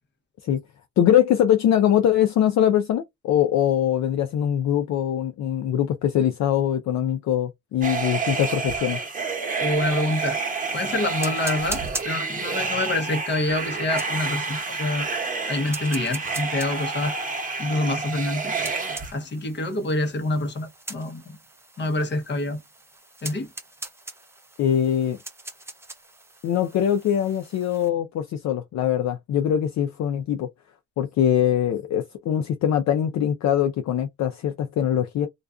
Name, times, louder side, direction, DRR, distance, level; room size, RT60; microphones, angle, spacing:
voice 1, 1.0-9.0 24.6-25.2 26.4-30.5 31.0-35.3, left 10 dB, 60° left, 0.5 m, -22 dB
sound 1, 7.8-19.1, right 4 dB, 25° right, 1.0 m, -29 dB
voice 2, 9.6-10.4 10.7-15.1 15.5-17.2 17.6-18.5 19.1-21.4 21.8-22.6 23.2-23.5, left 2 dB, 35° left, 0.8 m, -26 dB
sound 2, 9.8-27.9, right 2 dB, 10° right, 0.6 m, -42 dB
2.3 x 2.3 x 2.3 m
cardioid pair, 90°, 30 cm